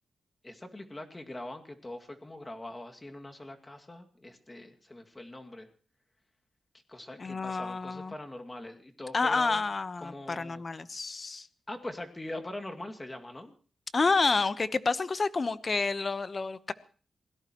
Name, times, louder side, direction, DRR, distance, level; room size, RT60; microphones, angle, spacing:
voice 1, 0.4-5.7 6.9-9.6 10.0-10.6 11.7-13.5, left 1 dB, 20° left, 4 dB, 2.3 m, -42 dB
voice 2, 7.2-8.1 9.1-11.5 13.9-16.7, left 4 dB, 40° left, 14 dB, 1.1 m, -29 dB
26.5 x 17.5 x 3.1 m, 0.42 s
cardioid pair, 75°, 0 cm